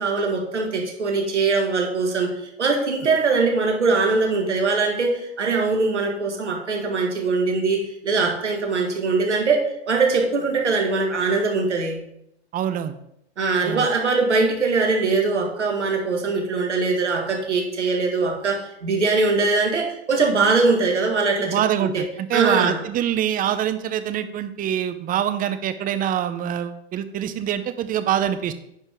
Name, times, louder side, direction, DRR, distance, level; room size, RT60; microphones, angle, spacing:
voice 1, 0.0-12.0 13.4-22.0 22.3-22.8, right 4 dB, 90° right, 2 dB, 2.0 m, -22 dB
voice 2, 12.5-12.9 13.6-13.9 21.4-28.5, right 10 dB, 25° right, 11 dB, 0.6 m, -25 dB
9.9 x 5.2 x 3.6 m, 0.79 s
hypercardioid pair, 105°, 34 cm